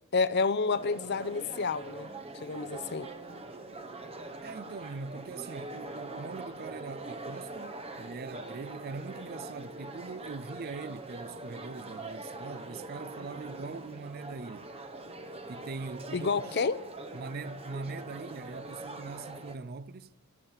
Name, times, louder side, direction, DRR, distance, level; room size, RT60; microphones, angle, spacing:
voice 1, 0.1-2.1 2.3-3.1 16.1-16.8, left 4 dB, 50° left, 0.6 m, -29 dB
sound 1, 0.7-19.6, right 2 dB, 25° right, 0.8 m, -43 dB
voice 2, 4.4-14.7 15.5-16.6 17.1-20.1, right 4 dB, 45° right, 0.5 m, -42 dB
12.5 x 12.0 x 7.3 m
head